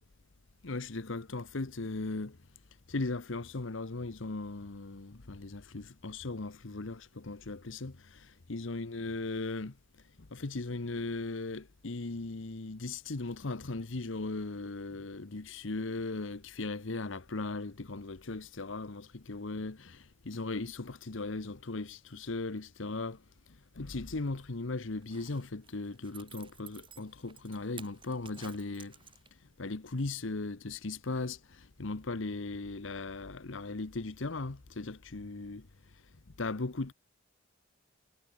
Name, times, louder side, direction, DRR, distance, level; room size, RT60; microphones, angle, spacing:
voice 1, 0.6-2.4 2.9-7.9 8.5-9.7 10.2-23.2 23.7-29.0 29.6-35.7 36.4-36.9, left 3 dB, 70° left, 1.1 m, -38 dB
Zipper (clothing), 24.9-29.5 29.9-30.0, right 7 dB, 25° right, 4.8 m, -53 dB
head